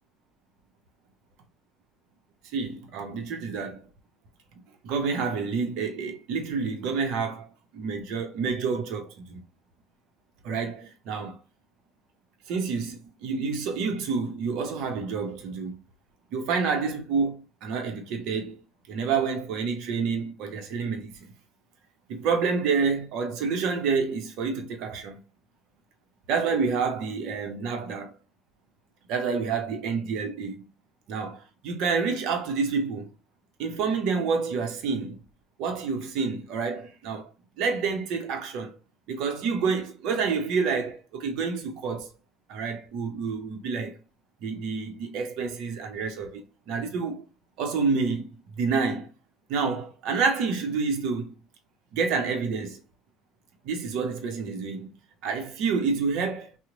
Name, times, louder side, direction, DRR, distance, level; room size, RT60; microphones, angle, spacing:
voice 1, 2.5-3.8 4.8-9.4 10.4-11.4 12.5-15.8 16.3-18.6 18.9-21.3 22.1-25.2 26.3-28.1 29.1-30.7 31.1-33.1 33.6-35.2 35.6-37.3 37.6-38.8 39.1-42.1 42.5-44.0 44.4-47.3 47.6-49.1 49.5-51.3 51.9-52.8 53.6-54.9 55.2-56.5, right 5 dB, 70° right, 0.6 m, -28 dB
2.9 x 2.1 x 3.7 m
hypercardioid pair, 65°, 0 cm